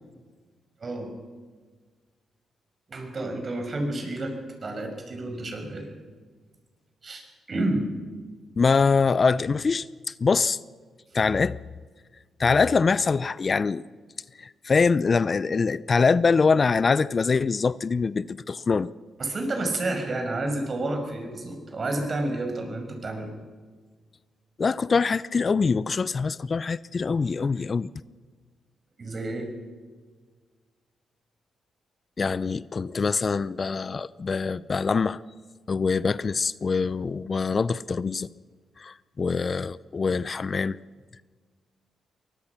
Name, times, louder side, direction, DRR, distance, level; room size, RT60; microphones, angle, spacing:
voice 1, 0.8-1.1 2.9-5.9 7.0-7.9 19.2-23.3 29.0-29.5, right 2 dB, 45° right, 5.7 m, -30 dB
voice 2, 8.6-9.8 10.2-10.6 11.1-11.6 12.4-13.8 14.4-18.9 24.6-27.9 32.2-35.2 35.7-38.3 38.8-40.8, left 4 dB, 45° left, 0.6 m, -24 dB
23.0 x 20.0 x 6.0 m
supercardioid pair, 55°, 0 cm